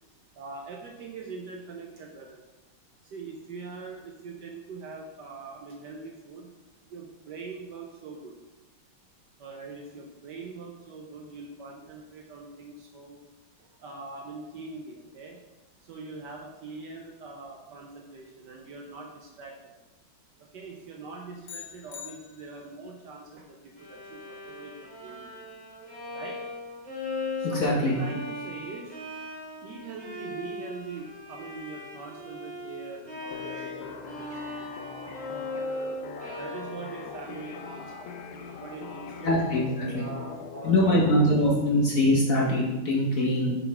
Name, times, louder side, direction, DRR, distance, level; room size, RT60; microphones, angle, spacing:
voice 1, 0.4-2.4 3.1-6.5 6.9-8.3 9.4-13.2 13.8-15.4 15.9-19.5 20.5-25.3 26.1-26.4 27.4-28.9 29.6-35.0 35.5-35.6 36.1-39.4 39.9-41.3, right 3 dB, 70° right, 0 dB, 1.1 m, -43 dB
sound 1, 21.4-22.9, left 9 dB, 70° left, 1.5 m, -44 dB
Bowed string instrument, 23.8-39.8, left 2 dB, 5° left, 1.1 m, -39 dB
voice 2, 27.4-27.9 39.2-40.0 40.6-43.6, left 1 dB, 50° left, -4 dB, 1.1 m, -23 dB
sound 2, 33.3-41.3, left 6 dB, 85° left, 1.5 m, -42 dB
6.2 x 5.6 x 3.4 m, 1.1 s
omnidirectional pair, 2.3 m